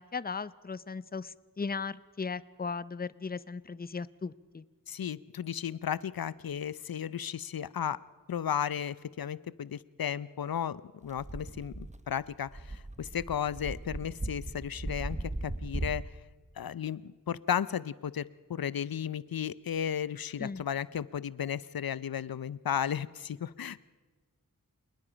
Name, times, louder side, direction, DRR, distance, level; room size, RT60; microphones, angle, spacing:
voice 1, 0.0-4.6 20.4-20.6, left 4 dB, 25° left, 18 dB, 0.6 m, -37 dB
voice 2, 4.9-8.0 8.3-16.1 16.6-23.8, left 9 dB, 90° left, 19 dB, 0.6 m, -34 dB
sound 1, 11.1-16.0, right 2 dB, 20° right, 1.0 m, -38 dB
28.0 x 20.0 x 5.1 m, 1.4 s
wide cardioid pair, 60°, 34 cm